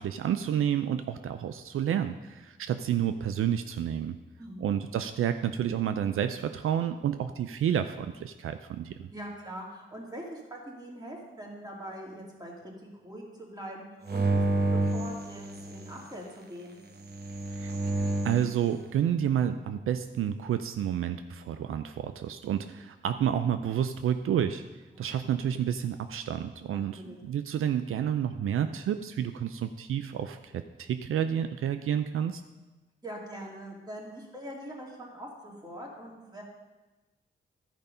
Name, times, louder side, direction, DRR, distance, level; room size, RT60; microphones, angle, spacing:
voice 1, 0.0-4.2 4.6-9.1 17.6-17.7 18.2-24.6 25.0-32.4, right 9 dB, 80° right, 9 dB, 0.4 m, -30 dB
voice 2, 4.4-4.7 9.1-14.4 14.7-16.8 24.9-25.1 26.7-27.2 33.0-36.4, right 1 dB, 20° right, -3 dB, 2.9 m, -43 dB
sound 1, 14.1-16.0 17.0-18.5, right 2 dB, 50° right, 1.1 m, -29 dB
12.5 x 5.3 x 5.4 m, 1.2 s
cardioid pair, 80°, 21 cm